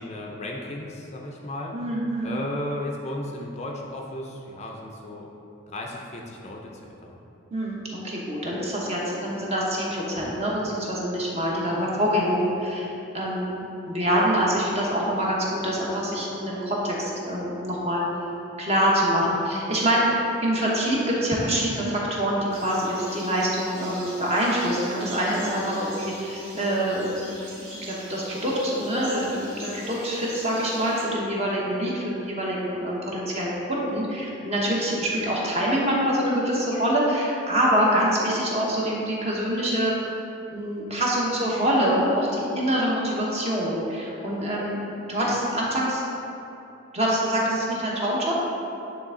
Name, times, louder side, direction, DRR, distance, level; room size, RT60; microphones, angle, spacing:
voice 1, 0.0-1.7 2.2-5.3 5.7-7.2, left 1 dB, 30° left, 0 dB, 0.5 m, -34 dB
voice 2, 1.7-2.4 7.5-12.9 13.1-18.0 18.6-27.1 27.6-39.9 40.5-44.8 45.1-46.0 46.9-48.3, equal, 30° right, -4 dB, 1.0 m, -25 dB
sound 1, 22.5-31.1, right 1 dB, 90° right, 1.4 m, -42 dB
9.0 x 3.5 x 3.7 m, 2.9 s
head